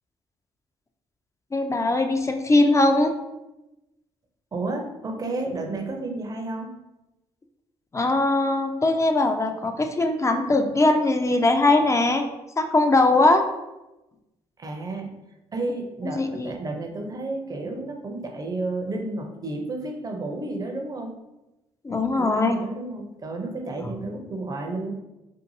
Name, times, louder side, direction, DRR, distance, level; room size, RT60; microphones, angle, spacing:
voice 1, 1.5-3.1 7.9-12.3 12.6-13.5 16.2-16.5 21.8-22.6, left 2 dB, 20° left, 6 dB, 0.4 m, -20 dB
voice 2, 4.5-6.7 14.6-15.2 15.5-21.1 22.2-24.9, right 2 dB, 25° right, 2 dB, 0.6 m, -31 dB
2.6 x 2.5 x 2.7 m, 0.98 s
hypercardioid pair, 50°, 14 cm